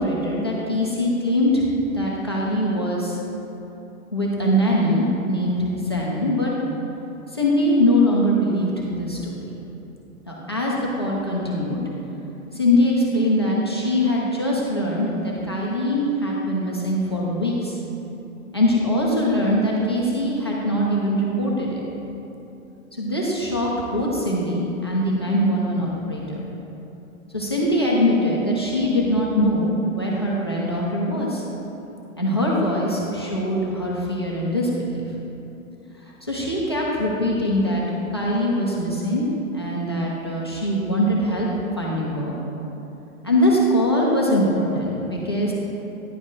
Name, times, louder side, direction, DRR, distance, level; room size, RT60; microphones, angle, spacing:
voice 1, 0.0-3.2 4.1-6.5 7.3-9.3 10.3-11.8 12.5-17.8 18.5-21.8 23.0-26.4 27.3-31.4 32.2-35.0 36.2-37.8 38.1-39.3 39.5-41.5 41.8-42.3 43.2-45.5, left 1 dB, 20° left, -4 dB, 0.3 m, -22 dB
9.8 x 4.7 x 3.8 m, 3.0 s
hypercardioid pair, 160°, 43 cm